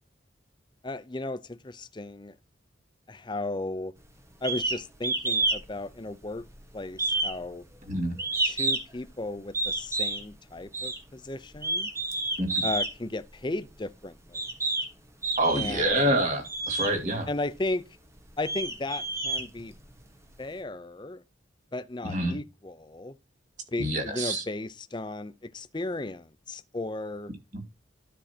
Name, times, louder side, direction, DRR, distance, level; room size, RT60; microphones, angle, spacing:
voice 1, 0.8-2.4 3.1-3.9 4.4-6.5 6.7-7.7 8.4-11.9 12.6-14.4 15.5-16.1 17.3-17.9 18.4-19.7 20.4-21.2 21.7-23.1 23.7-27.3, left 2 dB, 25° left, 0.6 m, -35 dB
sound 1, 4.4-4.8 5.0-5.6 5.9-6.6 7.0-9.0 9.5-10.2 10.7-11.0 11.5-12.9 13.7-13.8 14.3-14.9 15.2-15.9 16.4-16.9 17.6-17.7 18.2-20.0, right 2 dB, 15° right, 1.3 m, -29 dB
voice 2, 15.4-17.3 22.0-22.4 23.8-24.4 27.5-27.6, right 1 dB, 40° right, 2.3 m, -27 dB
12.5 x 6.3 x 2.8 m
head